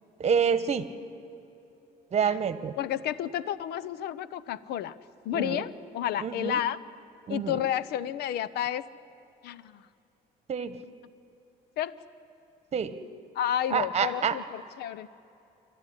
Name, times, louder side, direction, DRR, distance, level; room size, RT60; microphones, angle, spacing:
voice 1, 0.2-0.9 2.1-2.7 5.3-5.6 6.2-6.6 7.3-7.6 10.5-10.7 12.7-12.9 13.7-14.3, right 7 dB, 40° right, 14 dB, 1.3 m, -27 dB
voice 2, 2.8-4.9 5.2-6.8 7.3-8.8 9.4-9.8 11.8-11.9 13.3-15.1, left 10 dB, 75° left, 18 dB, 0.8 m, -31 dB
27.5 x 12.5 x 9.9 m, 2.8 s
cardioid pair, 110°, 17 cm